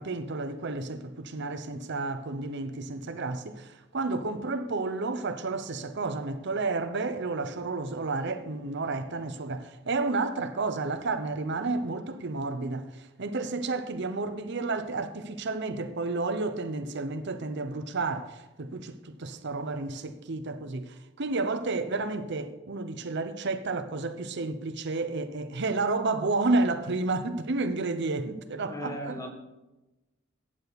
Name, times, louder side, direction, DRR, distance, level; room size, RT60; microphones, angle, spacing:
voice 1, 0.0-29.3, right 3 dB, 60° right, 0.8 m, -31 dB
voice 2, 28.7-29.3, equal, 15° left, 1.6 m, -36 dB
15.0 x 8.8 x 4.1 m
head